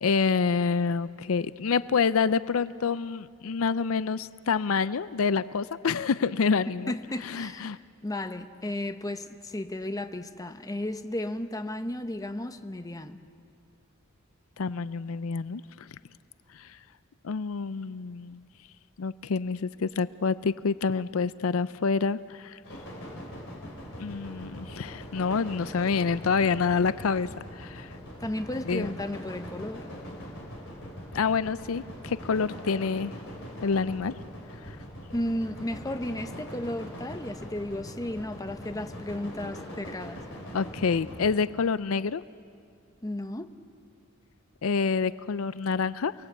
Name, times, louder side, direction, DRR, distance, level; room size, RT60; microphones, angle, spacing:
voice 1, 0.0-6.9 7.2-7.8 14.6-15.9 16.6-16.7 17.2-18.5 19.0-22.6 24.0-27.3 27.6-27.9 28.7-29.0 31.1-33.1 33.6-34.2 40.5-42.2 44.6-46.1, left 5 dB, 85° left, 16 dB, 0.5 m, -27 dB
voice 2, 6.9-13.2 28.2-29.8 35.1-40.2 43.0-43.5, left 1 dB, 15° left, 8 dB, 0.9 m, -34 dB
sound 1, 22.6-41.4, equal, 65° left, 4.8 m, -42 dB
28.5 x 19.5 x 8.2 m, 2.3 s
head